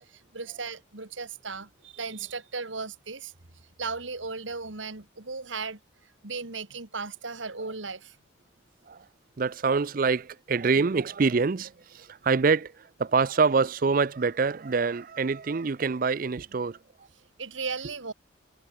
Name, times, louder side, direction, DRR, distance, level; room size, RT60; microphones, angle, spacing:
voice 1, 0.1-3.3 3.8-5.8 6.2-8.2 17.4-18.1, right 4 dB, 80° right, 2.5 m, -36 dB
voice 2, 9.4-16.8, right 4 dB, 45° right, 0.5 m, -25 dB
head